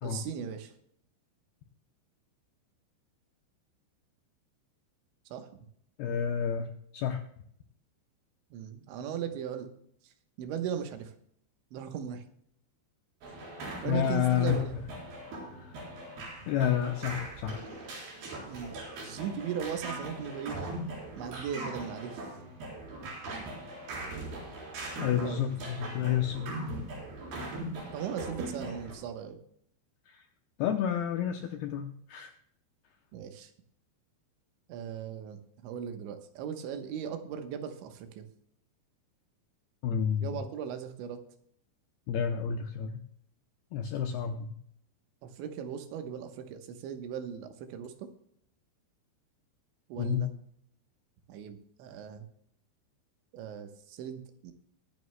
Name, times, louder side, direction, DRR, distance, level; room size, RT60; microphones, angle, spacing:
voice 1, 0.0-0.7 5.3-5.6 8.5-9.7 10.0-10.1 10.4-11.1 11.7-12.2 13.8-14.7 18.5-18.8 19.0-20.6 21.2-22.3 25.2-25.5 27.8-29.4 33.1-33.5 34.7-38.3 40.2-41.2 45.2-48.1 49.9-50.3 51.3-52.3 53.3-54.5, right 8 dB, 80° right, 6 dB, 3.4 m, -38 dB
voice 2, 6.0-7.2 13.9-14.6 15.3-15.8 16.5-17.6 25.0-26.9 30.1-30.2 30.6-32.3 39.8-40.3 42.1-43.0 43.7-44.6 50.0-50.3, left 9 dB, 85° left, 6 dB, 2.2 m, -30 dB
sound 1, 13.2-28.9, right 2 dB, 60° right, 5.8 m, -40 dB
23.0 x 9.5 x 2.2 m, 0.69 s
omnidirectional pair, 5.4 m